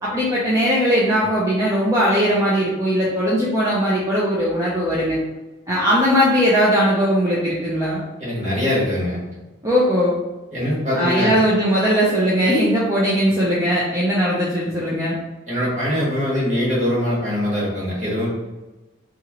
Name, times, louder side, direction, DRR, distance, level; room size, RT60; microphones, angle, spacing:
voice 1, 0.0-5.2 5.7-8.0 9.6-10.1 10.9-15.2, equal, 15° right, -8 dB, 0.5 m, -19 dB
voice 2, 8.2-9.2 10.5-11.3 15.5-18.3, left 1 dB, 40° right, -7 dB, 1.3 m, -22 dB
2.9 x 2.4 x 2.9 m, 1.1 s
head